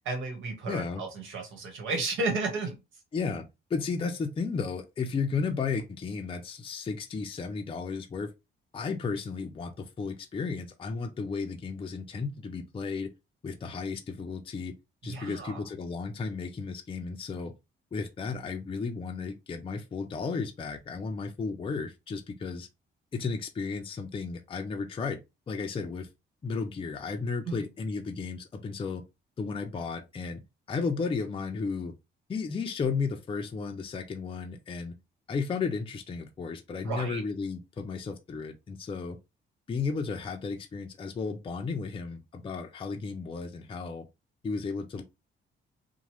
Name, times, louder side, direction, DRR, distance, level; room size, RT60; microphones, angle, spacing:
voice 1, 0.0-2.7 15.0-15.6 27.5-27.6 36.8-37.2, right 3 dB, 80° right, 1.2 m, -33 dB
voice 2, 0.7-1.0 3.1-3.4 3.7-8.3 8.7-13.1 13.4-14.7 15.0-17.5 17.9-22.7 23.1-25.2 25.5-26.1 26.4-29.0 29.4-30.4 30.7-31.9 32.3-34.9 35.3-39.2 39.7-44.1 44.4-45.0, left 4 dB, 25° left, 0.4 m, -34 dB
2.8 x 2.2 x 3.0 m
cardioid pair, 90°, 20 cm